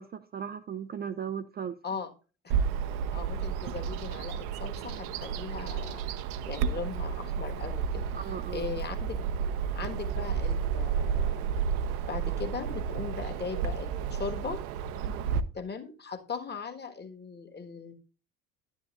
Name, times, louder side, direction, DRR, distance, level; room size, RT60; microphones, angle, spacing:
voice 1, 0.0-1.8 8.1-8.7 15.0-15.2, right 7 dB, 25° right, 0.5 m, -37 dB
Bird vocalization bird call bird song, 2.5-15.4, right 7 dB, 55° right, 0.9 m, -31 dB
voice 2, 3.1-6.0 6.4-9.3 9.7-11.6 12.0-14.6 15.5-17.9, left 5 dB, 25° left, 1.6 m, -39 dB
11.0 x 10.0 x 2.5 m
figure-of-eight pair, 60°, 41 cm